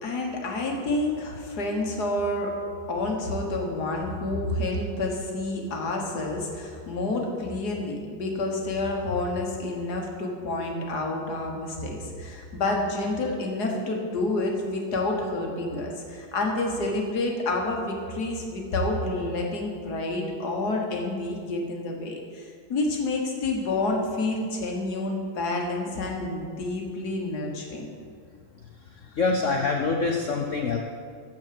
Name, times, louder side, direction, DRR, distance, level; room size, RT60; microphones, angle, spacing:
voice 1, 0.0-2.5 2.9-27.9, left 2 dB, 50° left, 1 dB, 1.8 m, -29 dB
voice 2, 28.5-30.8, left 4 dB, 75° left, 2 dB, 0.7 m, -26 dB
13.5 x 4.7 x 7.6 m, 2.1 s
omnidirectional pair, 2.3 m